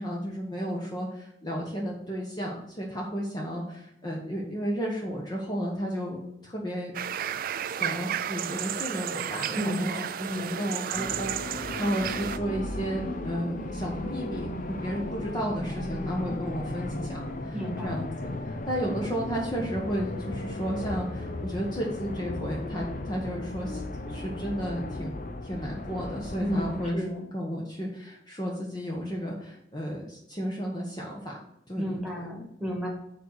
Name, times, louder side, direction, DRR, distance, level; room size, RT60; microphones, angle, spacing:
voice 1, 0.0-17.6 17.8-18.0 18.4-23.8 24.1-27.1 27.3-31.4 31.7-32.3, equal, 25° left, -2 dB, 1.2 m, -33 dB
sound 1, 6.9-12.4, right 9 dB, 50° right, 0.3 m, -33 dB
voice 2, 9.5-10.6 17.5-18.0 26.4-27.2 31.7-32.9, equal, 5° right, 0 dB, 2.0 m, -33 dB
sound 2, 10.9-26.9, left 2 dB, 45° left, 0.8 m, -36 dB
7.4 x 4.1 x 6.6 m, 0.81 s
head